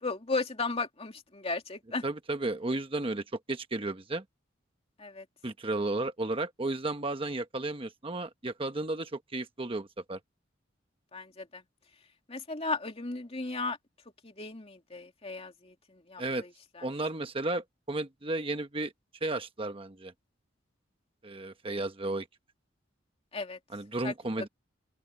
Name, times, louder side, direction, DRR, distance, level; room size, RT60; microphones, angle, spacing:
voice 1, 0.0-2.0 5.0-5.2 11.1-11.6 12.3-13.8 14.2-16.5 16.7-16.9 23.3-23.6 24.0-24.5, left 3 dB, 30° left, 2.7 m, -35 dB
voice 2, 2.0-4.2 5.4-10.2 16.2-16.5 16.8-18.9 19.2-20.1 21.2-22.3 23.7-24.5, right 2 dB, 30° right, 1.1 m, -33 dB
open air
head